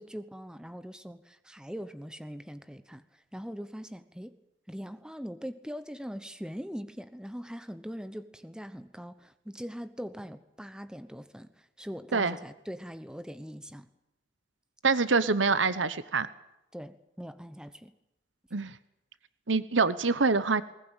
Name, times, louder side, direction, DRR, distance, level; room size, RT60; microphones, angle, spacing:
voice 1, 0.0-4.3 4.7-13.9 16.7-17.9, equal, 5° right, 11 dB, 1.0 m, -42 dB
voice 2, 14.8-16.3 18.5-18.7 19.5-20.6, right 4 dB, 80° right, 15 dB, 1.1 m, -25 dB
20.5 x 19.0 x 9.1 m, 0.89 s
head